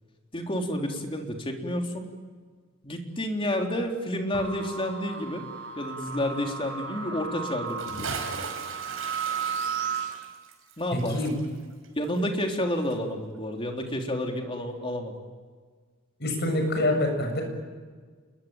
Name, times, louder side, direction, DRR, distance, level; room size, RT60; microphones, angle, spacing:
voice 1, 0.3-2.1 2.8-5.4 5.8-8.2 10.8-11.2 12.0-15.1, left 1 dB, 25° left, 3 dB, 3.6 m, -30 dB
sound 1, 4.3-10.1, right 6 dB, 60° right, 6.9 m, -34 dB
Bathtub (filling or washing) / Splash splatter, 7.7-12.6 12.9-13.0, right 4 dB, 80° right, 5.2 m, -38 dB
voice 2, 10.9-11.4 16.2-17.4, left 1 dB, 55° left, 4 dB, 7.4 m, -26 dB
29.0 x 21.5 x 9.0 m, 1.5 s
head